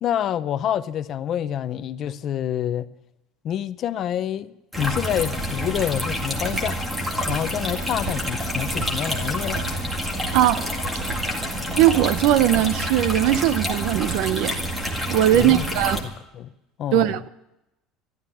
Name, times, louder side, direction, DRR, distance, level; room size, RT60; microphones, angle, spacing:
voice 1, 0.0-2.9 3.4-6.8 7.3-9.6 15.3-15.6 16.0-16.5 16.8-17.2, left 10 dB, 35° left, 0.6 m, -27 dB
sound 1, 4.7-16.0, equal, 5° right, 2.0 m, -28 dB
sound 2, 5.7-6.1 6.4-6.8 7.1-7.6 7.9-8.4 8.7-9.1 9.4-9.9 10.2-10.6 10.9-11.4 11.7-12.1 12.4-12.9 13.2-13.6 13.9-14.4 14.7-14.8, right 8 dB, 80° right, 1.9 m, -35 dB
voice 2, 10.3-10.7 11.7-14.6 15.1-16.0 16.9-17.3, right 13 dB, 60° right, 0.8 m, -19 dB
13.5 x 12.0 x 8.4 m
cardioid pair, 170°, 0 cm